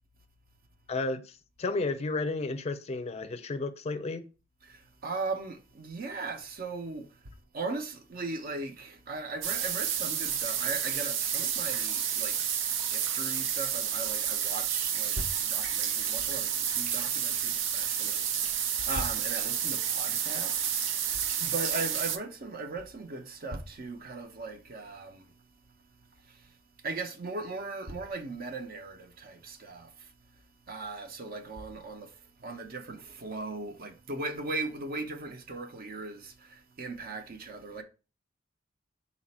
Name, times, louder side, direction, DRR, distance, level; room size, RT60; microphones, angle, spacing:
voice 1, 0.9-4.3, left 3 dB, 35° left, 0.4 m, -32 dB
voice 2, 4.6-12.4 12.7-25.5 26.2-26.6 26.8-30.1 30.7-37.8, right 3 dB, 50° right, 0.6 m, -38 dB
sound 1, 9.4-22.2, right 8 dB, 90° right, 0.5 m, -30 dB
4.1 x 2.4 x 4.1 m
head